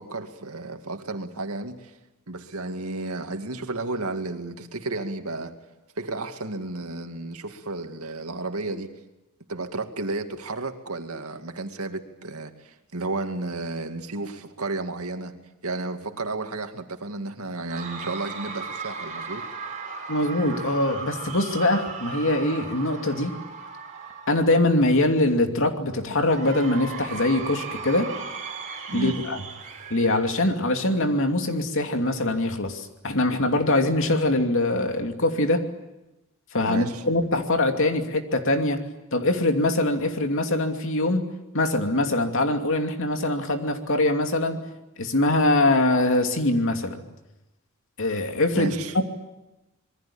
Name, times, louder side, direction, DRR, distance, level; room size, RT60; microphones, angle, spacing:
voice 1, 0.0-1.9 2.3-5.5 6.0-9.0 9.5-15.4 15.6-19.4 28.9-29.2 36.7-37.0 48.5-48.9, right 2 dB, 90° right, 6 dB, 2.3 m, -32 dB
Cheering / Crowd, 17.7-25.0 26.3-31.0, right 5 dB, 35° right, 4.4 m, -37 dB
voice 2, 20.1-23.4 24.3-28.1 28.9-29.4 29.9-35.6 36.5-38.8 39.1-41.2 41.5-44.6 45.0-47.0 48.0-48.7, left 2 dB, 65° left, 5 dB, 2.7 m, -23 dB
26.5 x 22.0 x 8.7 m, 0.98 s
head